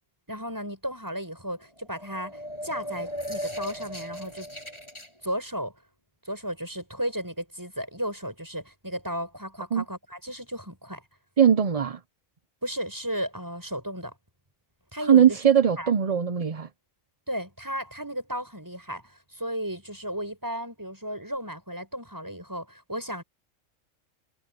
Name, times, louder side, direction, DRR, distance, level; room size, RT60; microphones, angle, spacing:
voice 1, 0.3-4.5 5.2-5.7 6.3-11.0 12.6-14.2 14.9-15.4 15.8-15.9 17.3-23.2, equal, 15° right, 7.3 m, -34 dB
sound 1, 1.8-5.1, equal, 20° left, 7.9 m, -37 dB
voice 2, 11.4-12.0 15.1-16.7, right 8 dB, 40° right, 0.6 m, -20 dB
omnidirectional pair, 1.4 m